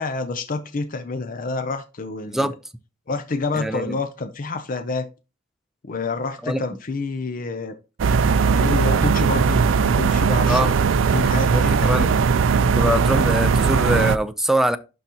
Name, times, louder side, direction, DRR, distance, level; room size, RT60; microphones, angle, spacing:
voice 1, 0.0-2.4 3.1-5.1 5.8-7.7 8.5-9.6 9.9-10.7 11.1-12.2, left 3 dB, 45° left, 0.6 m, -28 dB
voice 2, 3.5-4.0 6.4-6.6 10.5-10.7 11.5-12.1 12.8-14.8, right 1 dB, ahead, 0.5 m, -23 dB
sound 1, 8.0-14.2, right 5 dB, 80° right, 0.4 m, -19 dB
11.5 x 4.0 x 2.9 m
head